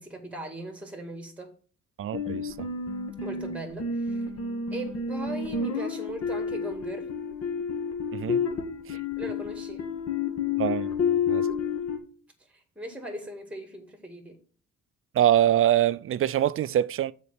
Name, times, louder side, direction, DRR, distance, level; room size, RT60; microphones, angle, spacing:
voice 1, 0.0-1.5 3.2-4.3 4.7-7.2 9.2-9.9 12.4-14.4, right 1 dB, 5° right, 1.9 m, -39 dB
voice 2, 2.0-2.7 8.1-8.4 8.9-9.0 10.6-10.9 11.3-11.5 15.1-17.1, right 11 dB, 45° right, 0.4 m, -24 dB
sound 1, 2.1-12.0, left 5 dB, 55° left, 1.6 m, -30 dB
6.8 x 4.4 x 6.5 m
cardioid pair, 90°, 30 cm